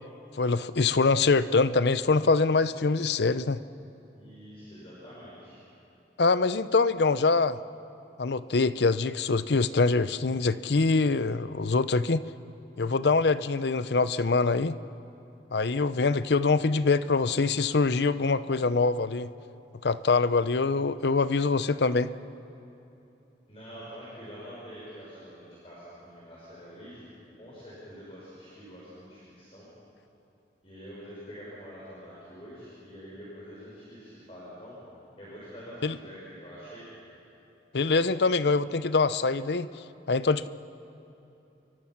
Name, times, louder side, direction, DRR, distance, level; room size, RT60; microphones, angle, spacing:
voice 1, 0.4-3.6 6.2-7.6 8.2-12.2 12.8-14.8 15.5-19.3 19.8-22.1 35.8-36.0 37.7-39.7 40.1-40.5, left 4 dB, 70° left, 14 dB, 0.6 m, -24 dB
voice 2, 4.1-5.6 23.5-27.1 27.4-29.7 30.6-34.8 35.2-36.9, equal, 30° left, -8 dB, 5.9 m, -46 dB
29.0 x 24.0 x 5.9 m, 2.9 s
head